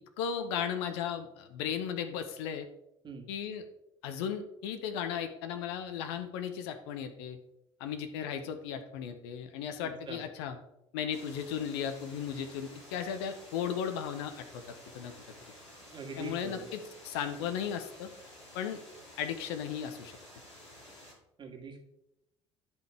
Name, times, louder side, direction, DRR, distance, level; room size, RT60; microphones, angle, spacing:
voice 1, 0.2-2.7 3.3-3.6 4.0-7.4 7.8-10.6 10.9-15.2 16.2-18.1 18.5-18.8 19.2-20.2, left 8 dB, 65° left, 7 dB, 0.8 m, -36 dB
voice 2, 9.8-10.2 15.9-16.7 21.4-21.8, right 4 dB, 30° right, 1 dB, 1.8 m, -43 dB
sound 1, 11.1-21.1, left 1 dB, 85° left, 2.7 m, -52 dB
10.5 x 5.6 x 3.4 m, 0.84 s
figure-of-eight pair, 55°, 15 cm